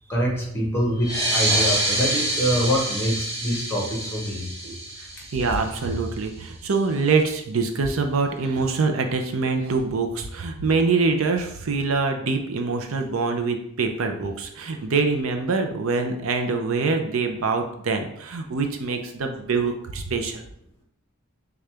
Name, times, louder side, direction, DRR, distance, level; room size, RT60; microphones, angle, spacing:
voice 1, 0.1-4.7, equal, 10° left, -3 dB, 1.2 m, -25 dB
sound 1, 1.0-6.1, right 1 dB, 30° right, 1.5 m, -27 dB
voice 2, 5.0-20.4, right 4 dB, 75° right, 5 dB, 0.6 m, -24 dB
6.4 x 2.4 x 3.4 m, 0.74 s
head